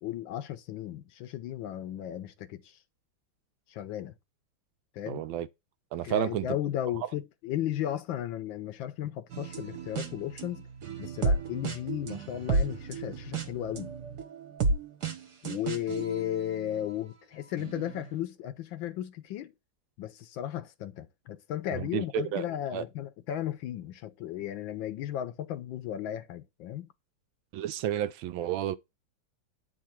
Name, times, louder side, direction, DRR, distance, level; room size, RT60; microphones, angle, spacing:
voice 1, 0.0-2.8 3.7-4.1 4.9-5.2 6.0-10.6 11.0-13.9 15.4-19.5 20.0-26.9, left 12 dB, 75° left, 1.3 m, -35 dB
voice 2, 5.1-5.5 5.9-6.6 21.9-22.4 22.7-22.8 27.5-28.8, right 12 dB, 75° right, 1.3 m, -31 dB
sound 1, 9.3-17.1 17.6-18.1, right 3 dB, 55° right, 1.4 m, -33 dB
9.5 x 3.8 x 4.4 m
omnidirectional pair, 2.3 m